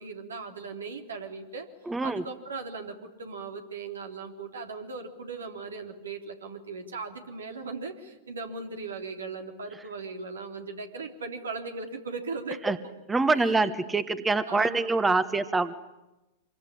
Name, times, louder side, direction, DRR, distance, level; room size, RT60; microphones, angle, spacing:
voice 1, 0.0-1.7 2.0-12.7 13.4-13.7 14.5-14.9, right 4 dB, 80° right, 4 dB, 3.6 m, -38 dB
voice 2, 1.9-2.2 12.6-12.8 13.1-15.7, right 3 dB, 10° right, 13 dB, 1.3 m, -25 dB
26.0 x 23.0 x 9.9 m, 1.0 s
hypercardioid pair, 105°, 0 cm